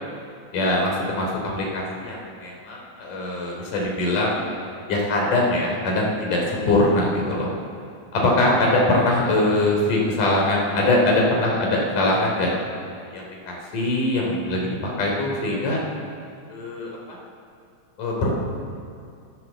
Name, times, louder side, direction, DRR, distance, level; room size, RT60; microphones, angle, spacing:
voice 1, 0.5-1.3 1.6-4.3 4.9-7.5 8.1-12.5 13.1-14.7 15.0-15.8 16.5-17.2 18.0-18.4, left 1 dB, 80° left, -2 dB, 4.9 m, -22 dB
26.0 x 14.5 x 7.3 m, 2.4 s
omnidirectional pair, 3.6 m